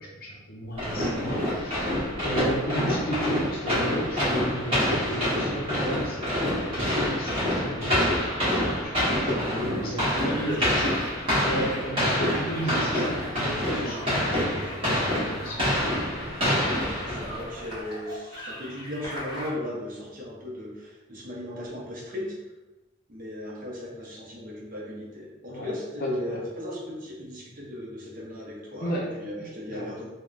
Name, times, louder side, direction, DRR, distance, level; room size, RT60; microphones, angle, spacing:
voice 1, 0.0-10.8 11.2-13.1 13.4-14.6 14.9-16.0 16.8-17.1 25.5-25.7 26.0-26.4 28.8-29.1 29.4-29.9, right 1 dB, 45° left, -3 dB, 0.6 m, -34 dB
sound 1, 0.8-17.5, equal, 25° right, 1.3 m, -27 dB
voice 2, 9.0-9.8 10.1-10.7 12.6-12.7 13.7-15.1 16.4-22.4 23.1-30.1, left 1 dB, 40° right, -4 dB, 0.6 m, -37 dB
sound 2, 10.1-19.5, equal, 20° left, 1.0 m, -41 dB
3.4 x 2.1 x 2.4 m, 1.1 s
head